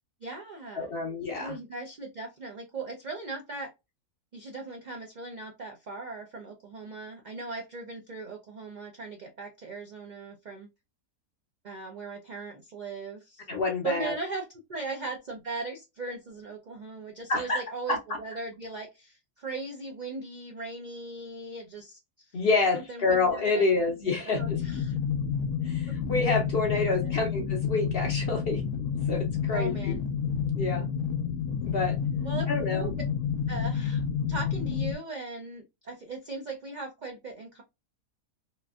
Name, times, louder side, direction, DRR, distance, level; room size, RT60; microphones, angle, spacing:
voice 1, 0.2-0.9 1.4-3.7 4.3-10.7 11.6-13.4 13.8-22.4 22.7-23.6 24.2-24.9 25.9-26.0 26.9-27.1 29.5-30.0 32.2-32.9 33.5-34.0 34.3-37.6, right 3 dB, 75° right, 0.4 m, -38 dB
voice 2, 0.8-1.6 13.5-14.1 17.3-17.6 17.9-18.2 22.3-24.6 25.6-28.6 29.1-30.0 30.5-30.9 31.7-32.0 32.5-32.9, left 3 dB, 60° left, 0.6 m, -28 dB
sound 1, 24.4-35.0, left 7 dB, 85° left, 1.1 m, -29 dB
3.0 x 2.5 x 2.3 m
omnidirectional pair, 1.5 m